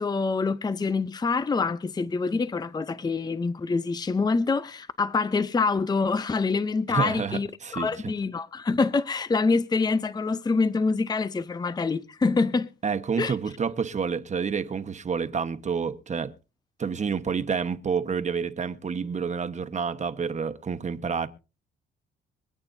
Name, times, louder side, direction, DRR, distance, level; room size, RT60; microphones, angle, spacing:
voice 1, 0.0-7.5 7.7-12.7 13.2-13.3, left 4 dB, 20° left, 0.6 m, -26 dB
voice 2, 6.9-8.1 12.8-16.3 16.8-21.3, right 6 dB, 35° right, 1.3 m, -29 dB
25.5 x 8.8 x 2.7 m
cardioid pair, 90°, 20 cm